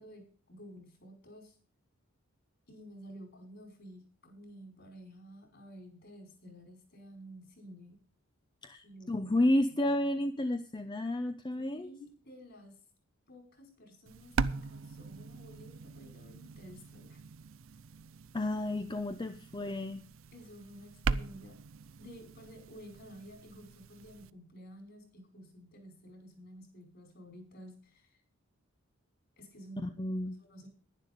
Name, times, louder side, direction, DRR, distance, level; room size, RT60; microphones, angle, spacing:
voice 1, 0.0-1.6 2.7-8.0 8.8-9.5 9.8-9.9 11.5-12.8 13.3-17.2 20.3-21.6 22.0-28.2 29.4-29.9 30.4-30.7, equal, 50° left, 4 dB, 5.1 m, -52 dB
voice 2, 8.6-11.9 18.3-20.0 29.8-30.4, left 1 dB, 20° left, 9 dB, 0.6 m, -31 dB
sound 1, 14.1-24.3, right 4 dB, 65° right, 0.6 m, -40 dB
11.0 x 11.0 x 5.2 m, 0.42 s
head